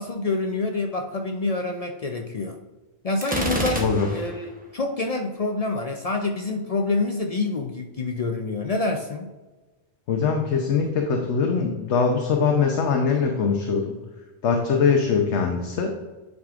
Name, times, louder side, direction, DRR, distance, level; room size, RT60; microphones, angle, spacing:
voice 1, 0.0-2.6 3.0-3.8 4.1-9.3, left 3 dB, 50° left, 4 dB, 0.4 m, -27 dB
Gunshot gunfire, 3.2-4.4, right 1 dB, 10° right, 0.8 m, -28 dB
voice 2, 3.8-4.1 10.1-13.9 14.4-15.9, left 5 dB, 80° left, 2 dB, 1.0 m, -22 dB
9.4 x 4.9 x 2.4 m, 1.2 s
omnidirectional pair, 1.2 m